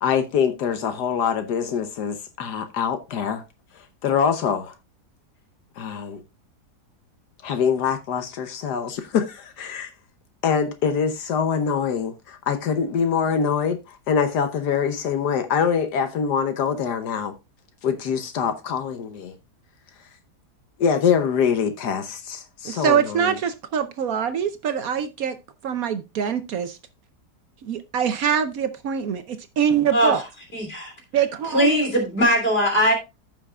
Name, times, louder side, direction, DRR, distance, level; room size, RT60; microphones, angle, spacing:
voice 1, 0.0-3.4 4.0-4.7 5.8-6.2 7.4-9.9 10.4-17.3 17.8-19.3 20.8-23.3, left 7 dB, 75° left, 1.5 m, -24 dB
voice 2, 22.6-25.4 25.6-26.8 27.6-30.2 31.1-31.9, right 8 dB, 65° right, 1.1 m, -24 dB
voice 3, 30.5-30.9 31.5-32.9, equal, 35° left, 3.5 m, -20 dB
14.5 x 5.7 x 2.3 m
omnidirectional pair, 1.8 m